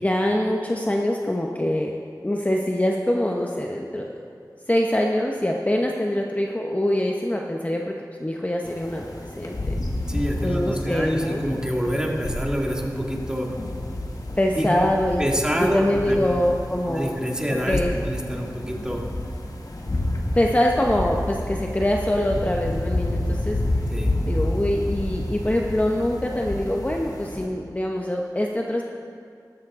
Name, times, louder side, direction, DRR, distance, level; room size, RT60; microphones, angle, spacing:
voice 1, 0.0-1.9 2.2-4.2 4.7-9.8 10.4-11.4 14.4-15.2 15.6-17.1 17.7-17.9 20.3-23.6 24.3-28.8, left 1 dB, 20° left, 0 dB, 0.8 m, -24 dB
sound 1, 8.6-27.5, left 1 dB, 55° left, 1.3 m, -30 dB
voice 2, 10.1-13.5 14.5-14.7 15.2-16.3 16.9-19.0 23.9-24.1, equal, 10° right, -1 dB, 1.8 m, -26 dB
13.0 x 13.0 x 3.6 m, 2.3 s
wide cardioid pair, 50°, 7 cm